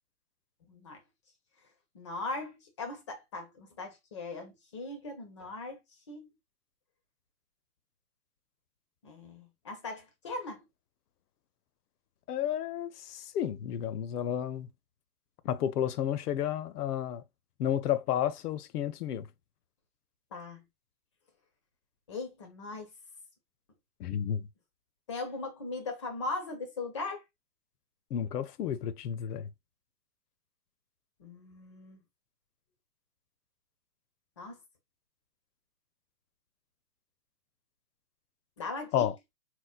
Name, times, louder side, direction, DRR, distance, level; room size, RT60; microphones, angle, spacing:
voice 1, 0.7-1.0 1.9-5.8 6.1-6.3 9.0-10.7 20.3-20.6 22.1-22.9 25.1-27.2 31.2-32.0 34.4-34.6 38.6-39.1, left 3 dB, 25° left, 0.3 m, -39 dB
voice 2, 12.3-14.7 15.4-17.2 17.6-19.3 24.0-24.5 28.1-29.5 38.9-39.1, left 10 dB, 80° left, 0.6 m, -31 dB
4.2 x 2.0 x 2.3 m
hypercardioid pair, 135°, 46 cm